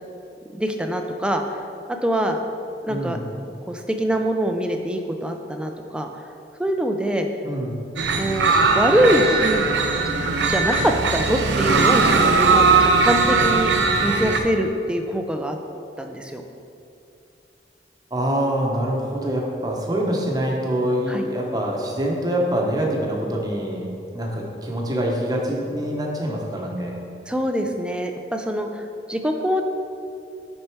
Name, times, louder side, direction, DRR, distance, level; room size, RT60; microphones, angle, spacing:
voice 1, 0.5-1.6 1.9-2.4 2.8-3.2 3.7-6.1 6.6-7.3 8.2-9.6 10.5-13.7 14.0-15.6 16.0-16.4 21.1-21.3 27.3-29.6, equal, 5° right, 4 dB, 0.4 m, -23 dB
voice 2, 2.9-3.3 7.4-7.8 18.1-23.9 24.1-27.0, equal, 20° right, -1 dB, 0.9 m, -25 dB
sound 1, 8.0-14.4, right 4 dB, 85° right, 0.6 m, -19 dB
6.6 x 5.5 x 4.5 m, 2.6 s
head